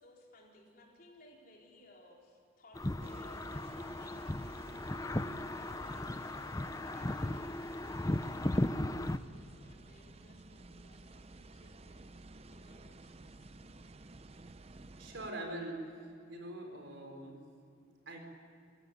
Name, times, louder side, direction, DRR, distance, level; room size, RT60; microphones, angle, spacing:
voice 1, 0.0-12.2 12.5-13.5, left 1 dB, 45° left, -2 dB, 4.4 m, -61 dB
sound 1, 2.7-9.2, left 1 dB, 15° left, 0.6 m, -36 dB
sound 2, 3.0-15.3, right 2 dB, 30° right, 0.6 m, -53 dB
voice 2, 15.0-15.9 16.3-17.3 18.1-18.2, right 1 dB, 60° right, 3 dB, 4.5 m, -42 dB
25.5 x 17.0 x 9.5 m, 2.5 s
head